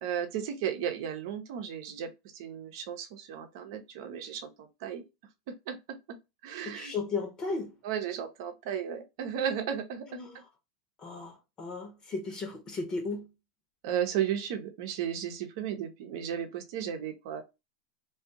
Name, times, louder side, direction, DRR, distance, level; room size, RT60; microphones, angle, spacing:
voice 1, 0.0-5.0 5.7-5.8 6.4-6.9 7.8-10.2 13.8-17.4, right 9 dB, 65° right, 0.7 m, -34 dB
voice 2, 6.6-7.8 10.1-10.4 11.0-13.3, left 3 dB, 30° left, 0.8 m, -35 dB
2.5 x 2.3 x 2.5 m
hypercardioid pair, 105°, 2 cm